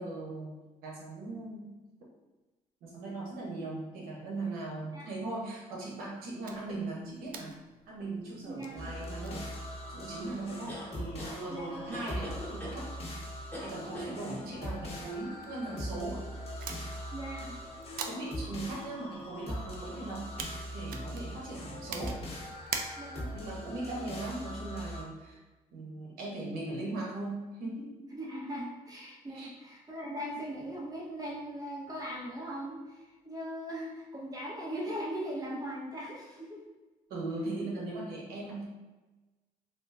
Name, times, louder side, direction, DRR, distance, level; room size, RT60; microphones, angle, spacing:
voice 1, 0.0-1.7 2.8-7.6 7.9-9.6 9.9-12.9 13.4-16.3 18.1-20.3 20.6-22.2 23.3-25.4 25.7-27.9 29.3-29.5 37.1-38.7, right 2 dB, 90° right, -2 dB, 0.9 m, -39 dB
sound 1, 6.4-23.4, right 6 dB, 75° right, 0.4 m, -47 dB
voice 2, 8.4-8.9 11.5-11.8 17.1-17.6 23.0-23.4 28.1-36.6 37.6-37.7, equal, 25° right, -4 dB, 1.1 m, -39 dB
sound 2, 8.8-25.0, equal, 40° left, 1.0 m, -41 dB
sound 3, 10.7-11.4 11.9-12.8 13.5-14.2, equal, 10° left, 1.1 m, -42 dB
3.7 x 2.3 x 2.5 m, 1.1 s
cardioid pair, 75°, 15 cm